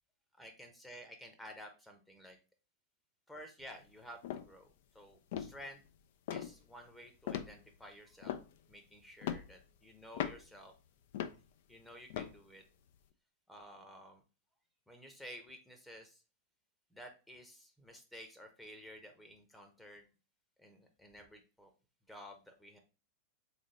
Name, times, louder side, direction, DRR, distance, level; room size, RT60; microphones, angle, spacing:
voice 1, 0.4-2.4 3.3-4.7 4.9-5.8 6.3-8.4 8.7-10.7 11.7-12.6 13.5-14.2 14.9-16.2 16.9-20.1 20.6-21.7 22.1-22.8, equal, 5° left, 4 dB, 0.8 m, -53 dB
sound 1, 3.6-3.9 4.2-4.5 5.0-5.1 5.3-5.9 6.3-6.6 7.3-7.8 8.2-8.8 9.2-9.6 10.1-10.6 11.1-11.5 12.1-12.4 12.9-13.0, left 10 dB, 55° left, 0.4 m, -40 dB
3.9 x 3.3 x 3.7 m, 0.31 s
figure-of-eight pair, 90°, 0 cm